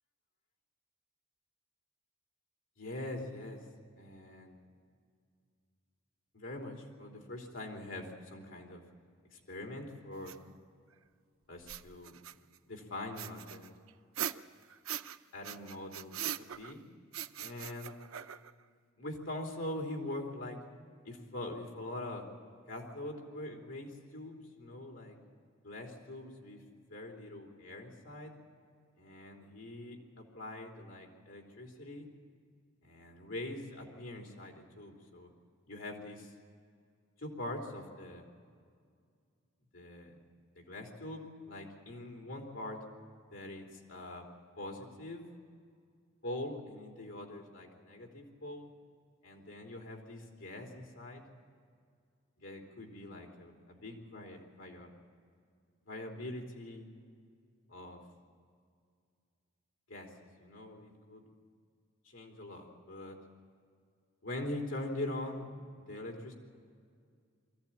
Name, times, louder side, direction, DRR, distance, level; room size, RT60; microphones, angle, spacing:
voice 1, 2.8-3.6 4.0-4.6 6.3-8.8 9.3-10.4 11.5-12.1 12.7-13.7 15.3-16.8 17.4-18.0 19.0-20.6 21.0-22.3 22.7-25.2 25.6-26.6 26.9-28.4 29.0-32.1 32.8-35.3 35.7-36.3 37.2-38.2 39.7-40.2 40.5-42.8 43.3-44.3 44.6-45.3 46.2-48.7 49.2-51.3 52.4-54.9 55.9-56.9 57.7-58.0 59.9-60.1 60.4-61.2 62.0-63.2 64.2-66.3, left 1 dB, 70° left, 1 dB, 3.3 m, -43 dB
sound 1, 10.3-10.4 11.6-12.6 13.2-15.2 15.4-16.8 17.1-18.6, right 10 dB, 85° right, 0.6 m, -41 dB
23.5 x 14.5 x 8.8 m, 2.2 s
head